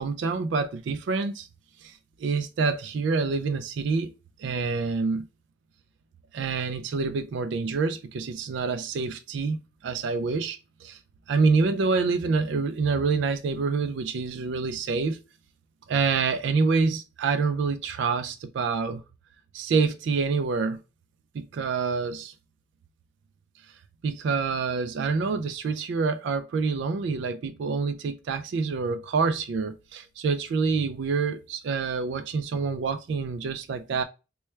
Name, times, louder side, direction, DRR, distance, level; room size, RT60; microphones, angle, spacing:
voice 1, 0.0-1.5 1.8-4.1 4.4-5.3 6.3-11.0 11.3-15.2 15.9-19.0 19.5-20.8 21.3-22.3 24.0-34.0, right 4 dB, 60° right, 0.3 m, -27 dB
3.1 x 2.2 x 4.3 m
head